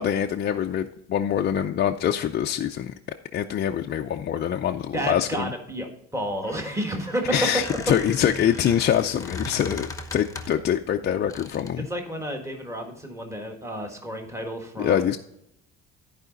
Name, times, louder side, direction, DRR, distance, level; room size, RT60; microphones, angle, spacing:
voice 1, 0.0-2.9 3.3-5.5 7.3-11.9 14.8-15.2, left 9 dB, 35° left, 3 dB, 0.4 m, -24 dB
voice 2, 4.9-7.8 11.8-15.0, right 1 dB, 10° right, 3 dB, 1.5 m, -30 dB
Squeak, 6.4-10.7 11.3-11.8, left 3 dB, 10° left, 0.9 m, -38 dB
13.5 x 4.9 x 3.9 m, 0.73 s
cardioid pair, 130°, 30 cm